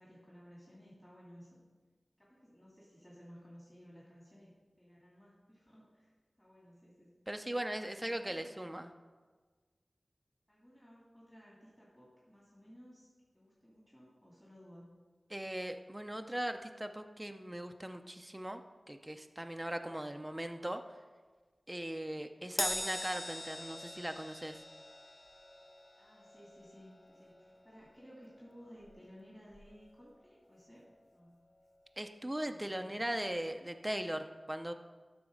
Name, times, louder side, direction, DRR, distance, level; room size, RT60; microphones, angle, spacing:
voice 1, 0.0-1.6 2.2-4.5 4.8-7.1 8.0-8.7 10.5-14.9 22.3-22.6 26.0-30.8 31.1-31.4 32.4-33.1, equal, 10° left, -6 dB, 2.4 m, -57 dB
voice 2, 7.3-8.9 15.3-18.6 18.9-20.8 21.7-24.6 32.0-34.7, right 1 dB, 15° right, 6 dB, 0.6 m, -39 dB
Crash cymbal, 22.6-29.2 29.5-29.8 30.8-30.9, left 1 dB, 30° left, 0.5 m, -43 dB
12.0 x 4.3 x 6.3 m, 1.4 s
wide cardioid pair, 70°, 0 cm